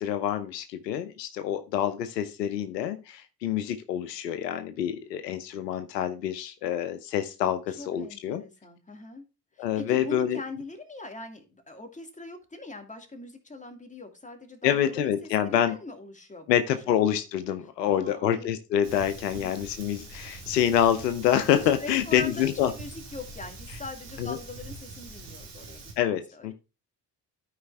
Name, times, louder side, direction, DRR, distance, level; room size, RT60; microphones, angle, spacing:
voice 1, 0.0-8.4 9.6-10.4 14.6-15.8 16.5-22.7 24.2-24.4 26.0-26.5, left 10 dB, 85° left, 10 dB, 0.8 m, -27 dB
voice 2, 7.8-9.2 9.5-17.0 17.8-18.5 19.3-19.7 21.5-26.5, left 2 dB, 15° left, 4 dB, 2.5 m, -42 dB
Fire, 18.8-25.9, right 2 dB, 85° right, 2.7 m, -44 dB
12.5 x 5.0 x 3.4 m, 0.29 s
hypercardioid pair, 45°, 48 cm